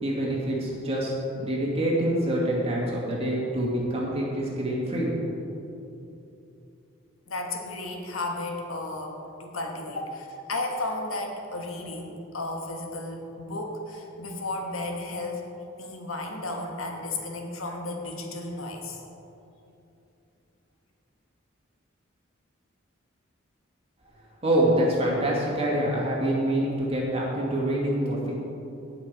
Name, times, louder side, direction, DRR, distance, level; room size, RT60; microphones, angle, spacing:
voice 1, 0.0-5.4 24.4-28.3, right 1 dB, 30° right, -4 dB, 2.4 m, -26 dB
voice 2, 7.3-15.4 15.8-19.0, left 2 dB, 85° left, 2 dB, 1.6 m, -33 dB
17.5 x 6.0 x 4.8 m, 2.8 s
head